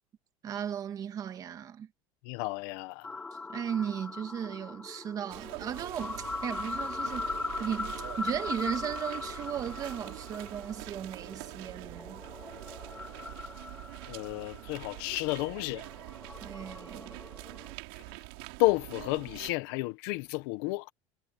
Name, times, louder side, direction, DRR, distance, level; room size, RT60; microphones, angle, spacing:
voice 1, 0.4-1.9 3.5-12.2 16.4-17.2, right 9 dB, 30° right, 2.0 m, -36 dB
voice 2, 2.2-3.2 14.1-15.9 17.9-18.0 18.6-20.9, left 23 dB, 70° left, 1.2 m, -31 dB
sound 1, 3.0-17.7, left 3 dB, 10° left, 0.4 m, -40 dB
sound 2, 5.3-19.5, right 26 dB, 75° right, 4.1 m, -45 dB
cardioid pair, 155°, 12 cm